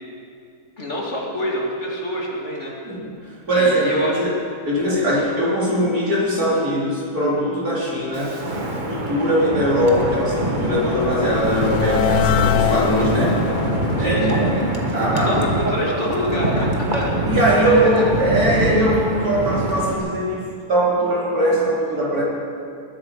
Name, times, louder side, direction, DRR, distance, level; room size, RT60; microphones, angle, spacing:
voice 1, 0.8-2.7 3.5-4.2 14.0-14.4 15.1-17.1 17.4-18.1, equal, 45° left, -3 dB, 2.8 m, -26 dB
voice 2, 3.5-4.4 4.7-8.4 8.8-13.4 14.0-15.4 17.3-22.2, equal, 70° right, -7 dB, 4.5 m, -20 dB
Wind, 8.1-20.0, right 2 dB, 30° right, 1.6 m, -24 dB
sound 1, 8.9-16.0, left 10 dB, 75° left, 1.0 m, -25 dB
21.0 x 12.5 x 5.0 m, 2.4 s
omnidirectional pair, 1.6 m